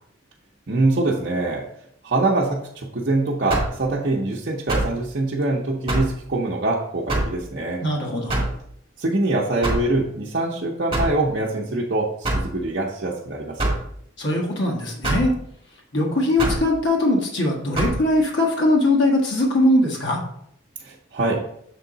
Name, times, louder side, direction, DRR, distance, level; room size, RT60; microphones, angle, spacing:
voice 1, 0.7-1.7 2.0-7.8 9.0-13.7 20.8-21.4, right 2 dB, 55° right, -4 dB, 0.7 m, -24 dB
sound 1, 3.5-3.8 4.7-5.0 5.9-6.2 7.1-7.4 8.3-8.6 9.6-9.9 10.9-11.2 12.2-12.5 13.6-13.8 15.0-15.3 16.4-16.7 17.7-18.0, right 1 dB, 25° right, 1.4 m, -23 dB
voice 2, 7.8-8.4 14.2-15.3 15.9-20.2, left 1 dB, 65° left, -2 dB, 1.5 m, -21 dB
6.9 x 3.6 x 3.9 m, 0.71 s
head